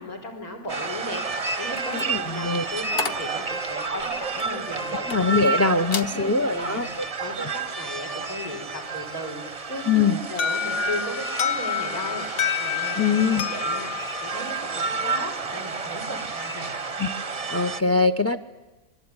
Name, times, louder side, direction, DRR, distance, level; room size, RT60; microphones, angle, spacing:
voice 1, 0.0-5.1 6.0-6.8 7.2-12.3 12.6-16.7, left 1 dB, 65° left, 2 dB, 5.6 m, -36 dB
sound 1, 0.7-17.8, right 4 dB, 30° right, 0.8 m, -31 dB
sound 2, 1.7-5.5 5.8-6.2 6.6-6.9, left 5 dB, 40° left, 1.2 m, -35 dB
voice 2, 1.9-2.6 5.1-6.9 7.4-7.5 9.9-10.2 13.0-13.4 17.0-17.1 17.5-18.4, left 4 dB, 15° left, 12 dB, 0.6 m, -22 dB
Alarm, 10.4-15.2, left 9 dB, 90° left, 1.8 m, -29 dB
26.5 x 23.0 x 9.8 m, 1.1 s
omnidirectional pair, 1.7 m